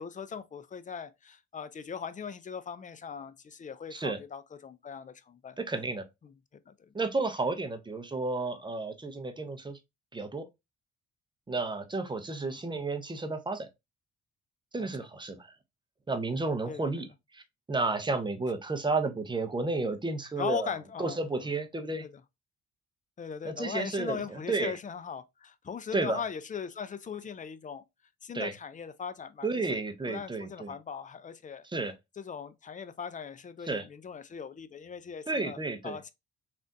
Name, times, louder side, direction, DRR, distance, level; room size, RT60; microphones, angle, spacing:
voice 1, 0.0-5.6 6.2-6.9 12.4-12.6 14.8-14.9 16.7-16.9 20.4-21.2 22.0-22.1 23.2-27.8 28.2-29.8 30.1-31.6 32.2-36.1, left 6 dB, 25° left, 0.4 m, -39 dB
voice 2, 5.6-6.1 6.9-9.8 10.1-10.4 11.5-13.7 14.7-15.5 16.1-17.1 17.3-17.4 17.7-20.7 21.0-22.1 23.4-24.8 25.9-26.2 28.3-28.5 29.4-30.7 31.6-31.9 33.7-33.9 35.3-36.0, right 3 dB, 15° right, 0.6 m, -32 dB
3.4 x 2.5 x 2.6 m
cardioid pair, 90°, 30 cm